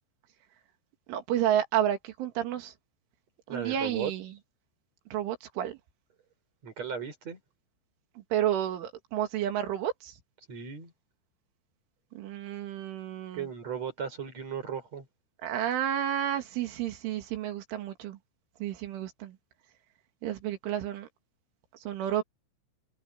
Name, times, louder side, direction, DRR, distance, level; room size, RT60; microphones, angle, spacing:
voice 1, 1.1-2.7 3.5-4.3 5.1-5.8 8.3-10.1 12.1-13.5 15.4-18.2 18.6-19.4 20.2-21.1 21.9-22.2, right 11 dB, 85° right, 4.8 m, -31 dB
voice 2, 3.5-4.1 6.6-7.4 10.5-10.9 13.3-15.1, right 7 dB, 35° right, 6.1 m, -36 dB
omnidirectional pair, 5.4 m